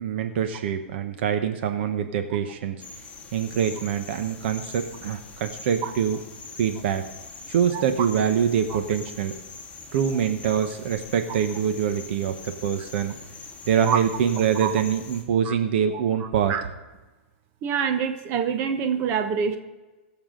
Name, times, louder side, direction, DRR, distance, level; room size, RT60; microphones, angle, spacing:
voice 1, 0.0-2.8 3.3-6.2 6.5-7.1 7.5-9.3 9.9-13.2 13.7-16.5, right 8 dB, 60° right, 7 dB, 1.1 m, -24 dB
sound 1, 2.8-15.2, left 4 dB, 15° left, 2.3 m, -43 dB
voice 2, 15.9-16.6 17.6-19.6, right 7 dB, 35° right, 7 dB, 1.2 m, -26 dB
21.5 x 7.2 x 3.8 m, 1.2 s
hypercardioid pair, 140°, 7 cm